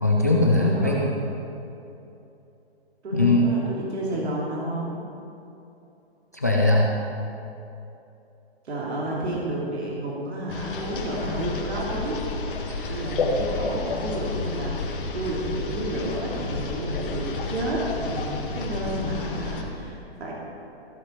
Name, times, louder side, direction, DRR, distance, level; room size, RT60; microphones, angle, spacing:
voice 1, 0.0-1.0 3.1-3.5 6.3-6.9 12.7-13.0, left 2 dB, 15° left, -2 dB, 0.4 m, -20 dB
voice 2, 0.7-1.0 3.0-5.0 8.6-12.2 12.9-20.3, right 1 dB, 80° right, -5 dB, 3.1 m, -31 dB
sound 1, 10.5-19.6, left 3 dB, 55° left, 1.6 m, -30 dB
15.0 x 7.4 x 5.2 m, 2.8 s
hypercardioid pair, 175°, 32 cm